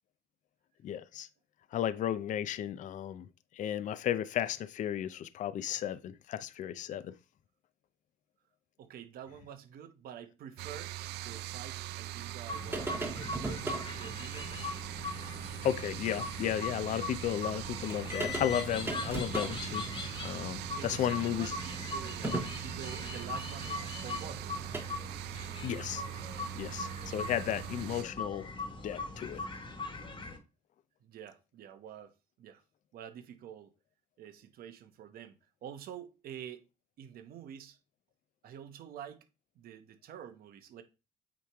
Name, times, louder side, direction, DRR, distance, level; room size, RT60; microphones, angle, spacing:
voice 1, 0.8-1.3 1.7-3.3 3.5-7.2 15.6-19.9 20.2-21.5 25.6-26.0 26.6-28.5 28.8-29.4, left 10 dB, 50° left, 0.4 m, -34 dB
voice 2, 8.8-14.7 20.7-24.8 27.1-27.2 31.0-32.6 32.9-33.7 34.2-35.3 35.6-36.6 37.0-37.8 38.4-39.3 39.6-40.8, right 9 dB, 60° right, 0.9 m, -48 dB
sound 1, 10.6-28.0, right 15 dB, 80° right, 0.4 m, -42 dB
sound 2, 12.5-30.4, left 3 dB, 30° left, 1.4 m, -41 dB
sound 3, 12.7-13.9 15.4-15.5 15.9-16.0 17.6-17.7 17.9-24.8, right 1 dB, 15° right, 1.3 m, -40 dB
8.7 x 3.1 x 3.5 m
cardioid pair, 110°, 17 cm